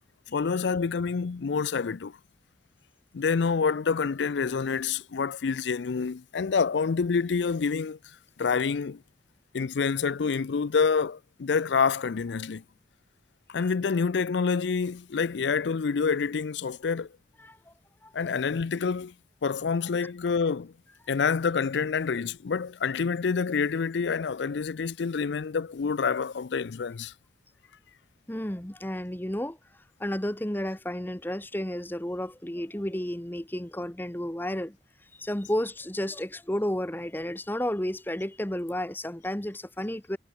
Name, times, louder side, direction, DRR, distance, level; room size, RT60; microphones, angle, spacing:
voice 1, 0.3-2.2 3.1-8.0 8.4-9.0 9.5-12.6 13.5-17.1 18.1-19.1 19.4-20.7 21.1-27.1, left 5 dB, 75° left, 0.5 m, -27 dB
voice 2, 17.4-17.7 18.0-18.3 20.0-20.1 28.3-29.6 30.0-34.8 35.1-40.2, left 1 dB, 10° left, 1.1 m, -32 dB
head